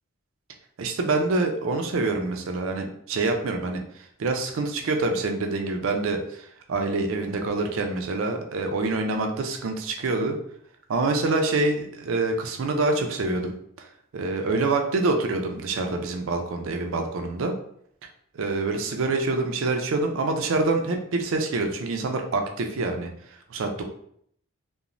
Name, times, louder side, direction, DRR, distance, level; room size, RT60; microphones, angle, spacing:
voice 1, 0.8-3.8 4.2-10.4 10.9-13.9 14.1-17.5 18.3-23.1 23.5-23.8, right 3 dB, 70° right, 4 dB, 0.4 m, -26 dB
3.0 x 2.0 x 2.5 m, 0.67 s
head